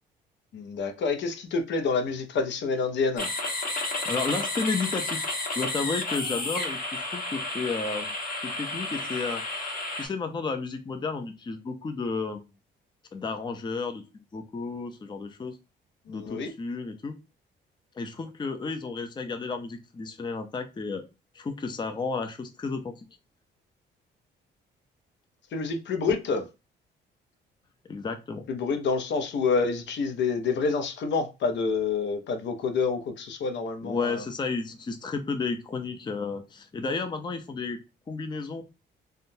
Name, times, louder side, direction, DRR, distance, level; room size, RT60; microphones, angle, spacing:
voice 1, 0.5-3.3 16.1-16.5 25.5-26.5 28.5-34.2, left 4 dB, 65° left, 0.7 m, -28 dB
sound 1, 3.2-10.1, left 2 dB, 45° left, 1.4 m, -32 dB
voice 2, 4.1-5.3 5.6-8.1 8.4-9.7 9.9-12.4 13.1-14.0 14.3-15.6 16.1-17.1 18.0-21.0 21.3-23.0 27.9-28.4 33.8-37.8 38.1-38.6, left 4 dB, 20° left, 0.5 m, -32 dB
3.5 x 2.2 x 2.6 m
cardioid pair, 90°, 20 cm